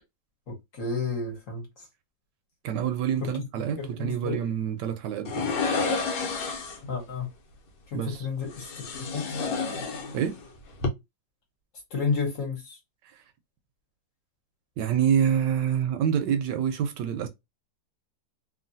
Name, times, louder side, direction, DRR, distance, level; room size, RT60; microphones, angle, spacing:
voice 1, 0.5-1.7 3.2-3.4 3.8-4.4 6.9-7.3 7.9-9.4 11.9-12.8, left 4 dB, 50° left, 1.3 m, -31 dB
voice 2, 2.6-5.5 7.9-8.3 10.1-10.4 14.8-17.3, right 8 dB, 75° right, 1.2 m, -27 dB
sound 1, 5.2-6.9 8.5-10.4 10.7-10.9, left 4 dB, 85° left, 1.4 m, -30 dB
3.1 x 2.6 x 2.6 m
omnidirectional pair, 1.9 m